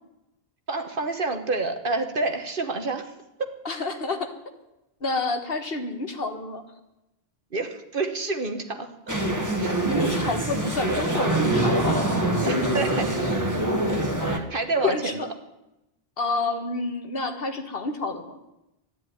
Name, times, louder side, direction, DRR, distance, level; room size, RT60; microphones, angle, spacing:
voice 1, 0.7-3.1 7.5-8.9 9.6-9.7 12.4-13.3 14.2-15.2, right 3 dB, 55° right, 7 dB, 1.6 m, -28 dB
voice 2, 3.6-4.3 5.0-6.6 9.8-12.1 12.4-13.2 14.8-15.3 16.2-18.4, left 3 dB, 65° left, 7 dB, 1.7 m, -29 dB
sound 1, 9.1-14.4, right 1 dB, 15° right, 1.8 m, -24 dB
13.0 x 10.5 x 9.4 m, 0.92 s
omnidirectional pair, 1.1 m